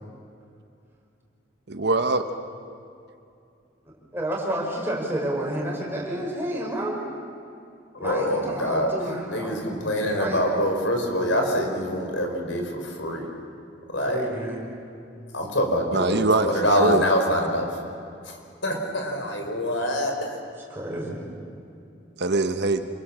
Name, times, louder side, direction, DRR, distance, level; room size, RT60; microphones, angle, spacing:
voice 1, 1.7-2.3 15.9-16.5 16.8-17.0 22.2-22.9, right 3 dB, 60° right, 8 dB, 1.2 m, -22 dB
voice 2, 4.1-7.0 8.0-10.4 14.1-14.6 20.7-21.2, right 1 dB, 10° right, -3 dB, 6.4 m, -30 dB
voice 3, 7.9-8.9 9.3-13.3 13.9-14.3 15.3-17.7 18.2-18.4 18.6-20.3, equal, 75° left, 3 dB, 4.9 m, -25 dB
28.5 x 26.5 x 7.6 m, 2.5 s
head